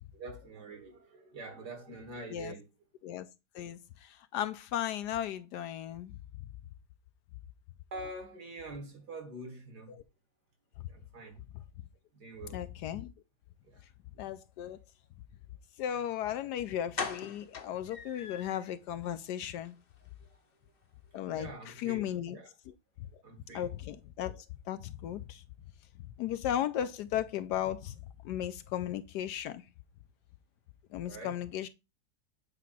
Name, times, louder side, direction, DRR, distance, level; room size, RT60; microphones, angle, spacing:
voice 1, 0.1-2.7 7.9-9.9 10.9-11.4 12.1-12.6 13.7-13.8 21.3-22.5 23.2-23.7 31.0-31.4, right 2 dB, 65° right, 2.7 m, -45 dB
voice 2, 3.5-6.1 9.9-10.0 12.5-13.1 14.2-14.8 15.8-19.7 21.1-22.4 22.7-22.8 23.5-25.4 26.2-27.9 28.2-29.6 30.9-31.7, left 11 dB, 75° left, 1.1 m, -36 dB
sound 1, 16.3-16.4 16.9-18.7 19.1-19.2 19.6-19.7 20.0-20.1, left 5 dB, 45° left, 0.8 m, -40 dB
8.4 x 2.9 x 5.9 m
omnidirectional pair, 1.9 m